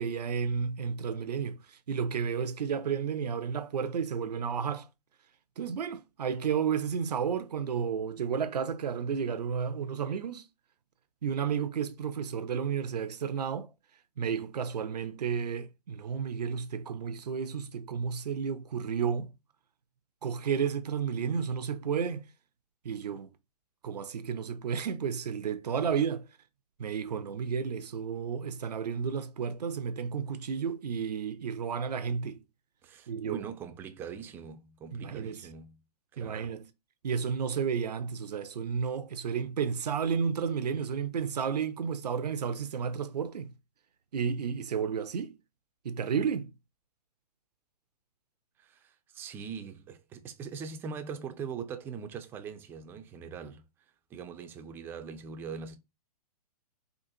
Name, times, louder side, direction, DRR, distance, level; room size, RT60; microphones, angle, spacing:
voice 1, 0.0-4.9 5.6-10.5 11.2-13.7 14.2-19.3 20.2-22.2 22.8-23.3 23.8-26.3 26.8-32.4 33.1-33.4 34.9-35.5 36.2-36.7 37.0-43.5 44.1-45.3 45.8-46.5, right 6 dB, 90° right, 0.5 m, -32 dB
voice 2, 32.8-35.8 36.1-36.5 48.6-53.6 54.1-55.8, right 6 dB, 10° right, 0.3 m, -42 dB
3.8 x 2.5 x 2.6 m
hypercardioid pair, 135°, 20 cm